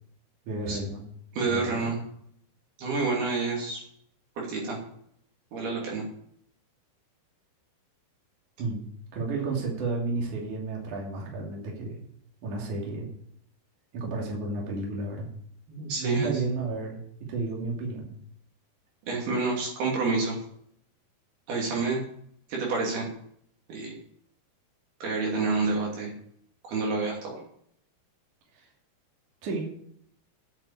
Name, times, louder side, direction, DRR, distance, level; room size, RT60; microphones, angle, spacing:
voice 1, 0.5-1.0 1.5-2.0 8.6-8.8 9.1-12.0 12.4-13.1 13.9-15.3 16.0-17.0 17.3-18.1 28.6-28.7 29.4-29.7, right 3 dB, 50° right, -1 dB, 4.0 m, -32 dB
voice 2, 1.3-2.0 2.8-3.8 4.4-4.8 5.5-6.0 15.7-16.3 19.1-20.4 21.5-22.0 22.5-23.0 23.7-23.9 25.0-26.1 26.6-27.4, right 3 dB, 65° right, -2 dB, 4.6 m, -28 dB
9.1 x 9.0 x 8.6 m, 0.68 s
omnidirectional pair, 4.9 m